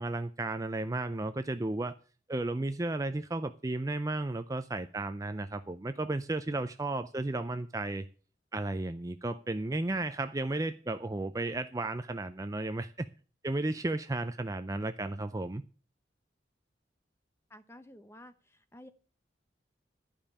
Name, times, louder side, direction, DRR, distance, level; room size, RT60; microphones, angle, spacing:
voice 1, 0.0-1.9 2.3-8.1 8.5-13.1 13.4-15.6, right 2 dB, 20° right, 10 dB, 0.5 m, -34 dB
voice 2, 17.5-18.9, left 1 dB, 15° left, 11 dB, 0.9 m, -52 dB
12.0 x 5.3 x 8.5 m, 0.38 s
head